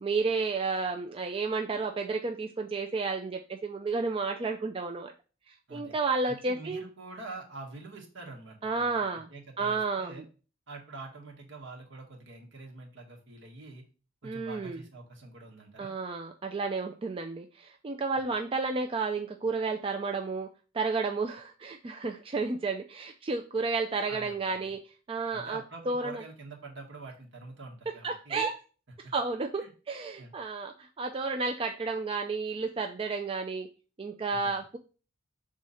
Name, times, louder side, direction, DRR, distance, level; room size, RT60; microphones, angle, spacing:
voice 1, 0.0-5.1 5.5-6.8 8.6-9.3 9.6-10.2 14.2-14.8 15.8-20.5 20.7-24.8 25.1-26.2 28.0-28.5 29.0-33.7 34.0-34.8, right 4 dB, 25° right, 4 dB, 0.4 m, -32 dB
voice 2, 6.2-8.9 9.3-10.2 10.7-13.8 14.2-15.9 24.1-24.7 25.3-28.4 29.6-29.7 30.2-30.3 34.3-34.6, right 3 dB, 65° right, 0 dB, 1.7 m, -46 dB
6.3 x 3.6 x 4.2 m, 0.36 s
head